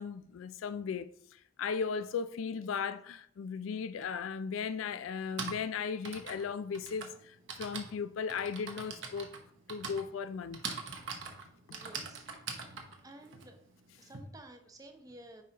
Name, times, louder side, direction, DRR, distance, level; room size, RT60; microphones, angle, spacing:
voice 1, 0.0-9.3 9.7-10.6 11.7-11.8, left 6 dB, 85° left, 0.3 m, -37 dB
Typing, 4.0-4.1 5.1-14.2, right 5 dB, 70° right, 1.0 m, -43 dB
voice 2, 11.7-12.7 13.0-13.6 14.0-15.4, right 1 dB, 20° right, 0.7 m, -53 dB
9.3 x 4.7 x 3.0 m
head